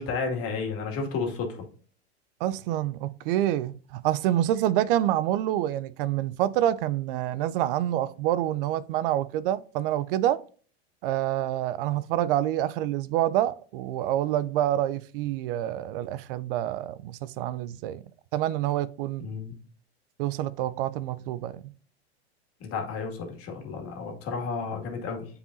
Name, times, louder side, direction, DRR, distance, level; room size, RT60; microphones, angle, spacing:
voice 1, 0.0-1.6 19.2-19.5 22.6-25.3, left 4 dB, 40° left, 2.1 m, -32 dB
voice 2, 2.4-10.4 11.0-18.0 18.3-19.3 20.2-21.7, right 12 dB, 55° right, 0.4 m, -27 dB
8.6 x 4.9 x 2.6 m
hypercardioid pair, 105°, 33 cm